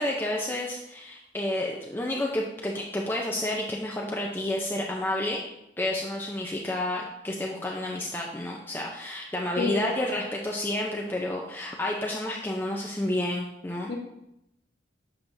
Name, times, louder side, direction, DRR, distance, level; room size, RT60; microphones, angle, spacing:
voice 1, 0.0-5.4 5.8-13.9, left 1 dB, 10° left, -1 dB, 0.5 m, -30 dB
voice 2, 9.6-10.1 13.9-14.0, left 3 dB, 65° left, -4 dB, 0.9 m, -29 dB
7.1 x 6.0 x 2.6 m, 0.85 s
head